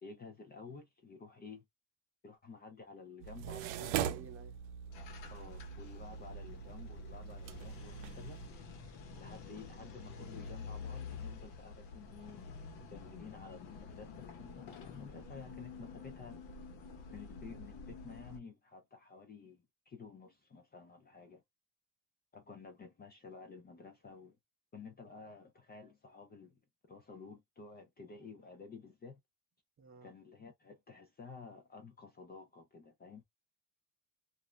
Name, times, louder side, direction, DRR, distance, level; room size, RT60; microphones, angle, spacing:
voice 1, 0.0-1.6 2.2-3.9 5.3-8.4 9.2-12.6 12.9-16.4 17.1-21.4 22.3-24.4 24.7-26.6 26.9-29.2 30.0-33.2, left 4 dB, 25° left, 0.4 m, -52 dB
sound 1, 3.2-8.5, right 10 dB, 80° right, 0.6 m, -41 dB
voice 2, 3.6-4.7 9.1-9.3 29.8-30.1, right 5 dB, 30° right, 0.7 m, -54 dB
sound 2, 4.9-18.4, left 4 dB, 70° left, 1.0 m, -49 dB
2.5 x 2.0 x 3.1 m
cardioid pair, 135°, 44 cm